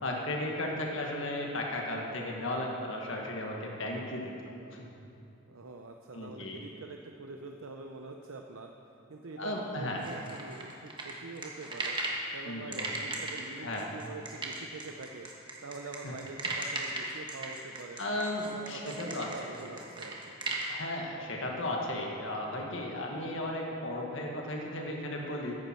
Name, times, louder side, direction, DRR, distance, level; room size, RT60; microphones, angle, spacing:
voice 1, 0.0-4.3 4.7-4.9 6.1-6.6 9.4-10.0 12.4-13.0 13.6-13.8 16.0-16.1 18.0-19.5 20.7-25.6, left 1 dB, 65° left, 0 dB, 1.6 m, -35 dB
voice 2, 5.5-8.7 9.1-12.0 12.3-18.0 18.3-20.4, right 3 dB, 80° right, 3 dB, 0.6 m, -45 dB
sound 1, 10.0-12.2 12.7-20.7, right 3 dB, 20° right, 1.4 m, -37 dB
14.5 x 10.5 x 4.5 m, 2.8 s
head